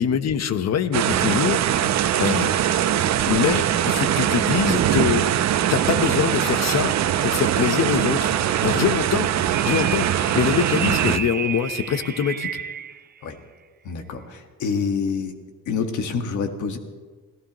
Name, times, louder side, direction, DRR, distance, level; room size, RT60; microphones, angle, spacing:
voice 1, 0.0-1.6 2.2-2.5 3.3-5.3 5.7-6.9 7.2-8.4 8.6-9.3 9.6-12.5, left 8 dB, 60° left, 11 dB, 1.0 m, -23 dB
sound 1, 0.9-11.2, right 11 dB, 65° right, 0.8 m, -22 dB
sound 2, 9.5-13.0, right 8 dB, 30° right, 0.6 m, -31 dB
voice 2, 13.9-15.4 15.7-16.8, left 5 dB, 75° left, 6 dB, 1.7 m, -27 dB
26.0 x 15.5 x 3.1 m, 1.4 s
cardioid pair, 90°, 30 cm